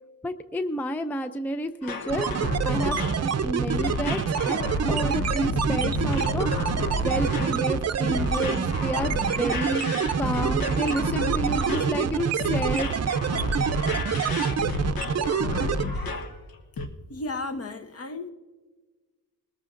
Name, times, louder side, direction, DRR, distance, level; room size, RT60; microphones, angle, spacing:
voice 1, 0.2-2.3 2.6-3.0 3.4-9.8 10.2-12.9, equal, 5° left, 0.4 m, -31 dB
sound 1, 1.8-16.4 16.8-16.9, left 2 dB, 75° left, 1.1 m, -31 dB
sound 2, 2.1-15.8, right 6 dB, 45° right, 0.6 m, -26 dB
voice 2, 17.1-18.3, left 2 dB, 40° left, 0.9 m, -34 dB
21.5 x 14.0 x 2.5 m
cardioid pair, 115°, 35 cm